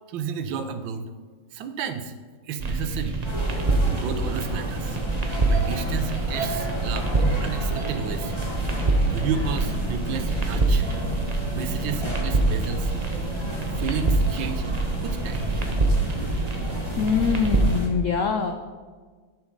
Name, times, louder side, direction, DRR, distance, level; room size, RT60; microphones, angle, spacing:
voice 1, 0.1-1.1 1.5-2.1 2.5-3.2 3.9-5.0 5.5-8.6 9.1-11.1 11.5-12.9 13.7-14.6 15.0-15.5, right 6 dB, 85° right, 9 dB, 1.4 m, -32 dB
sound 1, 2.6-17.8, right 2 dB, 40° right, 0.5 m, -25 dB
sound 2, 3.2-17.9, equal, 15° left, 1.5 m, -33 dB
voice 2, 17.0-18.5, left 6 dB, 85° left, 6 dB, 0.6 m, -23 dB
10.5 x 5.9 x 5.2 m, 1.5 s
omnidirectional pair, 2.1 m